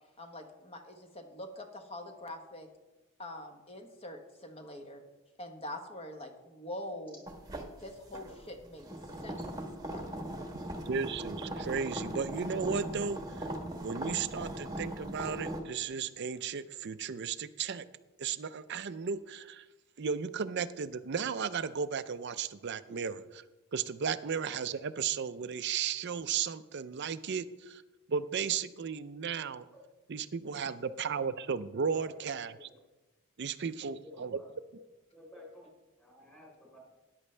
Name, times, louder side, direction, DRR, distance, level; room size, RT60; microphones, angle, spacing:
voice 1, 0.2-2.7 3.2-5.0 5.4-7.2 7.8-8.9 9.2-9.4 9.9-10.0, left 1 dB, 25° left, 4 dB, 1.2 m, -44 dB
sound 1, 7.3-15.6, right 1 dB, 15° right, 1.2 m, -39 dB
voice 2, 10.9-13.5 13.8-17.9 18.2-19.6 20.0-23.2 23.7-27.8 28.1-29.6 30.1-32.7 33.4-34.4, right 6 dB, 50° right, 13 dB, 0.5 m, -35 dB
voice 3, 30.5-31.2 31.9-32.8 33.8-34.5 35.1-35.7 36.0-36.8, left 1 dB, 10° left, -3 dB, 4.0 m, -52 dB
13.5 x 10.5 x 3.3 m, 1.1 s
head